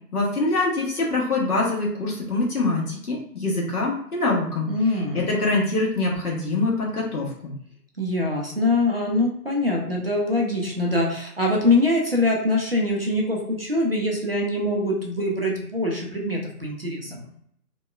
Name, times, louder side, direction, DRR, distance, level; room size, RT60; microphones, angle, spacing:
voice 1, 0.1-7.5, left 2 dB, 70° left, -4 dB, 1.2 m, -24 dB
voice 2, 4.7-5.2 8.0-17.2, left 2 dB, 40° right, -2 dB, 0.4 m, -23 dB
2.8 x 2.1 x 2.3 m, 0.69 s
figure-of-eight pair, 145°, 47 cm